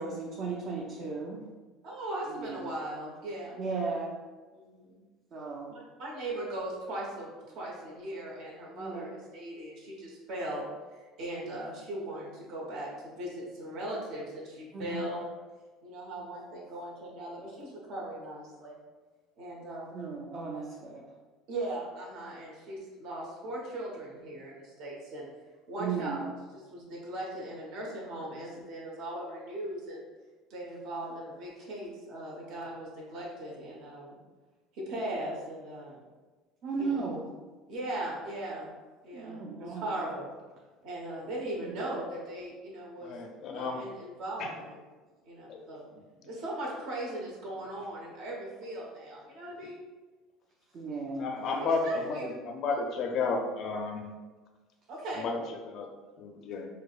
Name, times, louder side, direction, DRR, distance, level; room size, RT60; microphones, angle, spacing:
voice 1, 0.0-1.4 2.3-2.6 3.6-4.1 5.3-5.7 8.8-9.1 11.3-11.5 14.7-15.0 19.9-21.0 25.8-26.2 36.6-37.2 39.1-40.0 41.6-41.8 50.7-51.3, right 4 dB, 45° right, -3 dB, 0.5 m, -35 dB
voice 2, 1.8-3.6 4.5-5.0 5.7-7.3 7.5-15.3 15.8-18.8 19.4-20.0 21.5-25.3 25.7-30.0 30.5-34.1 34.7-36.0 36.8-37.0 37.7-38.7 39.0-40.3 40.8-43.2 43.5-44.8 45.3-45.9 46.2-49.8 51.6-52.3 54.9-55.3, right 1 dB, 65° right, -4 dB, 1.1 m, -39 dB
voice 3, 43.0-43.8 44.4-44.5 45.5-45.7 51.2-54.1 55.2-55.4 55.7-55.9 56.2-56.7, left 4 dB, 50° left, 3 dB, 0.4 m, -32 dB
4.8 x 2.2 x 2.4 m, 1.3 s
supercardioid pair, 120°, 0 cm